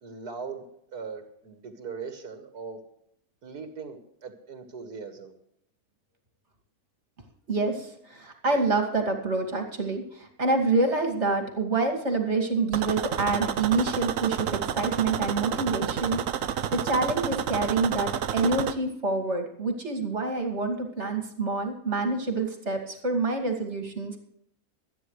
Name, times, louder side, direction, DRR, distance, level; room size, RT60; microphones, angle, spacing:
voice 1, 0.0-0.7 0.9-2.8 3.4-5.3, right 5 dB, 85° right, 5 dB, 2.2 m, -39 dB
voice 2, 7.5-24.2, right 3 dB, 45° right, 3 dB, 2.7 m, -27 dB
sound 1, 12.7-18.7, right 9 dB, 65° right, 1.1 m, -30 dB
25.0 x 9.8 x 3.2 m, 0.73 s
omnidirectional pair, 1.6 m